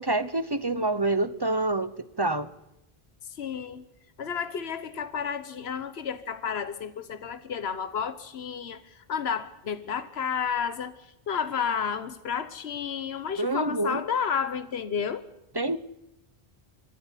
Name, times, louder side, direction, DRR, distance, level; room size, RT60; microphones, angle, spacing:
voice 1, 0.0-1.9 2.2-2.5 13.4-14.0 15.5-15.8, right 2 dB, 25° right, 13 dB, 0.9 m, -26 dB
voice 2, 3.3-3.8 4.2-15.3, left 7 dB, 75° left, 12 dB, 1.3 m, -31 dB
25.0 x 16.0 x 10.0 m, 0.85 s
omnidirectional pair, 1.1 m